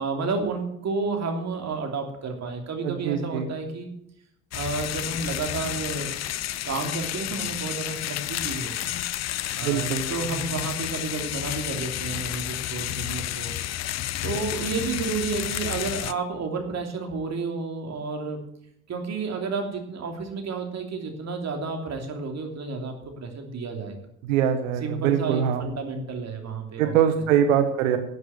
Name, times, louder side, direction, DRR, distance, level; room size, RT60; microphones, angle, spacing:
voice 1, 0.0-3.9 4.5-6.1 6.6-8.7 9.6-13.6 14.2-18.4 18.9-23.9 24.8-26.9, right 4 dB, 40° right, 3 dB, 3.0 m, -31 dB
voice 2, 2.8-3.5 9.6-10.0 24.2-25.6 26.8-28.0, right 9 dB, 75° right, 8 dB, 1.3 m, -23 dB
sound 1, 4.5-16.1, left 13 dB, 40° left, 0.7 m, -31 dB
12.0 x 8.0 x 7.9 m, 0.77 s
hypercardioid pair, 60°, 40 cm